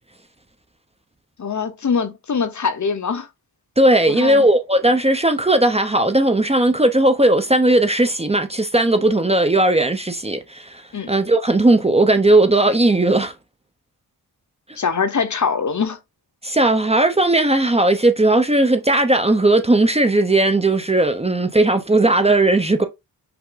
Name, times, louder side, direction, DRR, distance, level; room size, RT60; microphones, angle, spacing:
voice 1, 1.4-3.3 4.1-4.5 10.9-11.1 14.8-16.0, left 5 dB, 45° left, 1.0 m, -23 dB
voice 2, 3.8-10.8 11.1-13.3 16.4-22.8, right 2 dB, 15° right, 0.8 m, -17 dB
5.8 x 2.2 x 3.9 m
cardioid pair, 60°, 39 cm